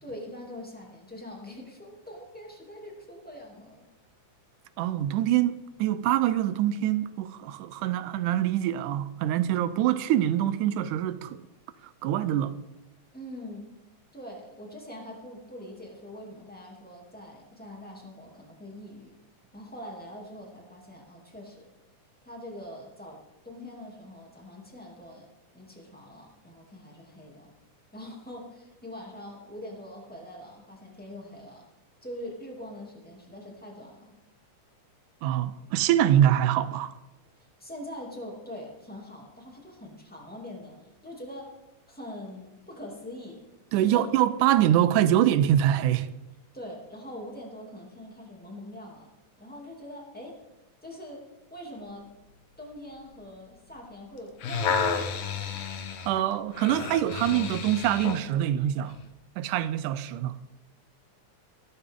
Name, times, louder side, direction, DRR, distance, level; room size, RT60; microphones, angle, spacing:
voice 1, 0.0-3.9 13.1-13.7 14.1-19.1 19.5-21.7 22.2-25.3 25.5-27.5 27.9-31.7 32.0-34.2 37.4-41.5 41.9-43.4 43.8-44.2 46.5-49.1 49.4-50.4 50.8-52.1 52.6-55.6, left 1 dB, 5° left, 2.1 m, -43 dB
voice 2, 4.8-11.4 12.0-12.6 35.2-36.9 43.7-46.1 56.1-59.0 59.4-60.4, right 11 dB, 85° right, 2.1 m, -24 dB
sound 1, 54.2-58.3 58.9-59.0, left 6 dB, 65° left, 1.5 m, -31 dB
14.5 x 13.5 x 3.7 m
omnidirectional pair, 3.6 m